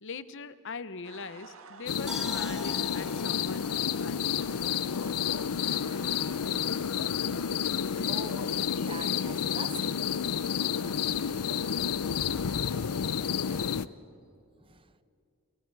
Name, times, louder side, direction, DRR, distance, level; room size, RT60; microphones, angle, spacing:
voice 1, 0.0-4.5, left 4 dB, 55° left, 0.9 m, -42 dB
sound 1, 1.0-13.7, right 4 dB, 65° right, 1.5 m, -51 dB
sound 2, 1.9-13.9, left 7 dB, 90° left, 0.6 m, -30 dB
sound 3, 2.1-5.3 5.6-5.7, right 1 dB, 5° right, 1.3 m, -45 dB
voice 2, 8.1-10.0 14.6-15.0, right 5 dB, 25° right, 0.7 m, -45 dB
29.5 x 28.5 x 4.8 m
head